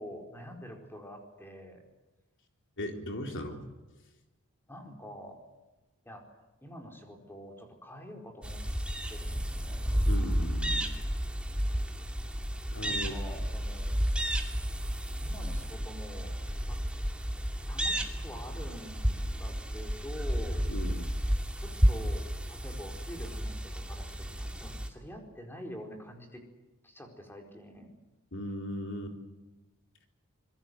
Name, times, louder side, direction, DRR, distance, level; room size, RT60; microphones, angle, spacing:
voice 1, 0.0-1.8 4.7-5.4 6.0-8.6 9.1-10.1 12.8-14.0 15.2-16.3 16.7-16.9 17.7-20.6 21.6-26.4 26.8-27.9, equal, 10° left, 2 dB, 4.6 m, -46 dB
voice 2, 2.8-3.6 10.1-10.9 12.7-13.2 20.7-21.1 28.3-29.2, equal, 55° left, 3 dB, 3.8 m, -37 dB
sound 1, 8.4-24.9, equal, 5° right, 2.5 m, -31 dB
26.0 x 21.5 x 7.9 m, 1.1 s
head